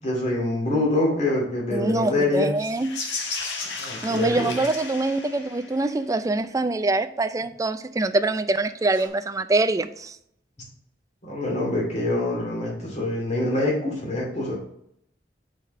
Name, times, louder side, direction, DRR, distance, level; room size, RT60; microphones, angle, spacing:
voice 1, 0.0-2.5 3.8-4.6 11.2-14.6, left 2 dB, 40° left, 2.5 m, -25 dB
voice 2, 1.7-2.9 4.0-10.2, right 2 dB, 20° right, 0.3 m, -24 dB
sound 1, 2.5-6.0 8.9-9.1, left 4 dB, 80° left, 1.5 m, -34 dB
6.7 x 4.9 x 4.3 m
head